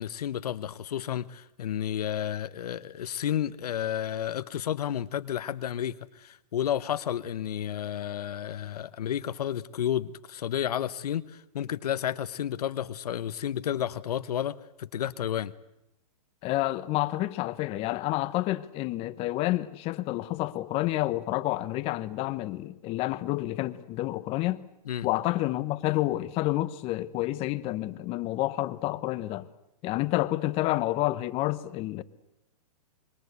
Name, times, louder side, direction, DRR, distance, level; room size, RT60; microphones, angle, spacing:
voice 1, 0.0-15.5 24.9-25.1, left 10 dB, 75° left, 1.0 m, -31 dB
voice 2, 16.4-24.6 25.0-29.5 29.8-32.0, left 17 dB, 30° left, 1.1 m, -29 dB
26.5 x 23.0 x 8.2 m
hypercardioid pair, 140°, 20 cm